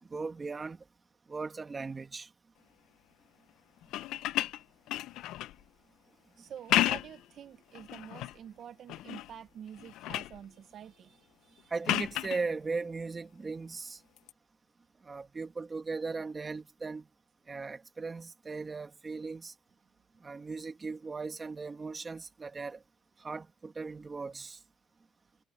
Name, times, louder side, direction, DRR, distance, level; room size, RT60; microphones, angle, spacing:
voice 1, 0.1-0.8 1.3-2.3 11.7-14.0 15.0-17.0 17.5-19.5 20.2-22.8 23.2-24.6, right 4 dB, 20° right, 1.8 m, -38 dB
sound 1, 3.8-5.6 6.5-7.3 7.7-8.4 8.9-9.4 9.7-10.4 11.8-12.4 14.2-14.3, left 15 dB, 80° left, 0.5 m, -32 dB
voice 2, 6.4-11.7, right 9 dB, 50° right, 0.7 m, -48 dB
cardioid pair, 135°, 0 cm